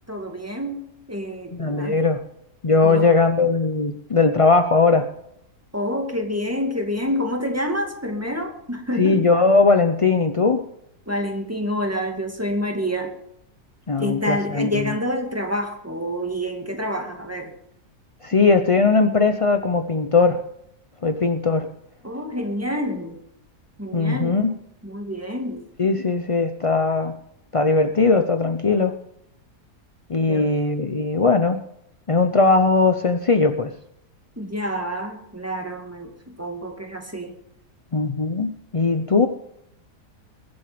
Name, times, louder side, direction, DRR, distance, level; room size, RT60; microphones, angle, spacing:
voice 1, 0.1-2.0 2.8-3.1 5.7-9.3 11.1-13.1 14.0-17.5 22.0-23.2 23.8-24.4 24.8-25.6 30.3-30.5 34.4-37.4, equal, 10° right, 3 dB, 2.1 m, -28 dB
voice 2, 1.5-2.2 2.6-5.1 9.0-10.6 13.9-14.9 18.2-20.4 21.0-21.7 23.9-24.5 25.8-27.2 27.5-29.0 30.1-31.6 32.1-33.7 37.9-39.3, left 4 dB, 50° left, 7 dB, 0.4 m, -19 dB
22.0 x 8.1 x 5.1 m, 0.77 s
omnidirectional pair, 1.8 m